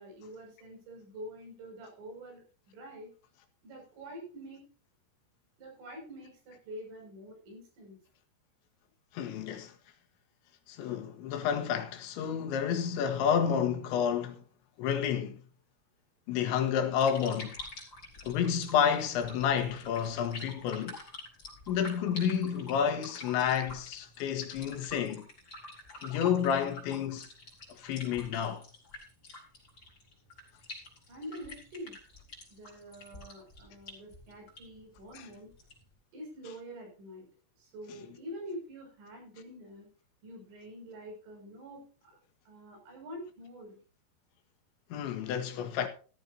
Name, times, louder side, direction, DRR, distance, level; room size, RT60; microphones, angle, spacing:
voice 1, 0.0-2.4 2.7-3.1 3.6-4.6 5.6-8.0 31.1-32.0 32.5-35.5 36.1-37.3 37.6-39.9 40.2-42.2 42.5-43.8, equal, 80° right, 8.6 m, -46 dB
voice 2, 9.1-9.7 10.7-14.4 14.8-15.4 16.3-17.5 18.3-21.0 21.7-25.3 26.0-27.3 27.7-28.6 35.1-35.3 44.9-45.9, left 8 dB, 75° left, 3.5 m, -30 dB
sound 1, 16.9-35.9, left 2 dB, 25° left, 4.5 m, -48 dB
14.5 x 14.0 x 2.7 m
omnidirectional pair, 5.6 m